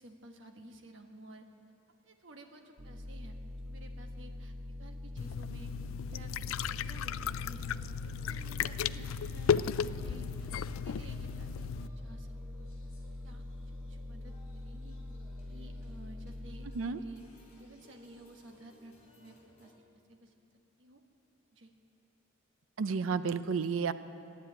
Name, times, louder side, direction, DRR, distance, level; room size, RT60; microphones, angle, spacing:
voice 1, 0.0-1.4 2.0-3.4 3.6-5.7 6.1-6.3 6.7-7.7 8.2-11.7 12.0-12.3 13.2-13.4 13.9-15.0 15.5-17.2 17.6-19.7 20.1-20.3 20.8-21.0 21.5-21.7, right 1 dB, 65° right, 3 dB, 1.2 m, -53 dB
sound 1, 2.8-16.7, left 1 dB, 35° right, 1.0 m, -44 dB
sound 2, 5.2-11.9, left 7 dB, 85° left, 0.3 m, -35 dB
sound 3, 7.0-19.7, left 1 dB, 35° left, 3.6 m, -62 dB
voice 2, 22.8-23.9, right 5 dB, 85° right, 13 dB, 0.5 m, -31 dB
13.5 x 10.5 x 8.8 m, 2.8 s
head